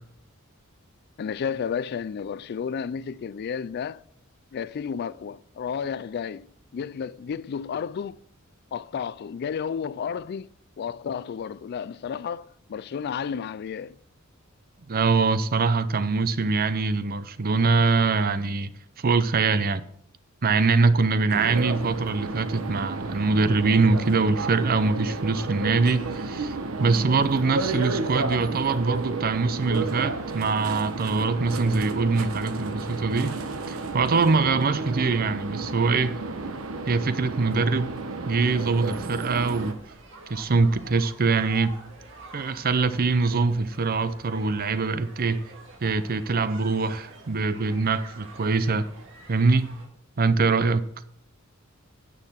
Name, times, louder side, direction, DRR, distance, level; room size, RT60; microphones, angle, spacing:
voice 1, 1.2-4.0 4.5-6.5 6.7-8.2 8.7-10.5 10.8-14.0, left 7 dB, 50° left, 0.3 m, -32 dB
voice 2, 14.9-18.7 19.0-19.8 20.4-33.4 33.7-36.2 36.9-37.9 38.3-39.8 40.3-41.7 42.3-45.5 45.8-48.9 49.3-49.7 50.2-50.8, right 4 dB, 45° right, 0.6 m, -23 dB
sound 1, 21.3-39.7, right 3 dB, 90° right, 1.0 m, -32 dB
sound 2, 39.3-49.9, right 2 dB, 65° right, 2.0 m, -47 dB
9.9 x 6.5 x 5.8 m
head